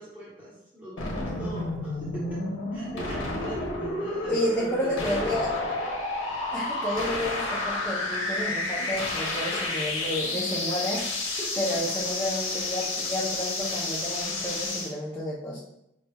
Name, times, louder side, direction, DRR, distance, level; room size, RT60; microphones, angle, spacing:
voice 1, 0.0-2.4 2.7-5.5 8.8-9.0 9.5-9.6 11.4-11.9, equal, 10° right, -9 dB, 1.1 m, -41 dB
sound 1, 1.0-14.9, left 2 dB, 75° left, 0.9 m, -30 dB
voice 2, 4.3-5.5 6.5-15.6, left 1 dB, 10° left, -8 dB, 0.6 m, -31 dB
sound 2, 4.4-14.0, right 4 dB, 55° right, 0.6 m, -48 dB
5.1 x 3.1 x 2.3 m, 0.80 s
head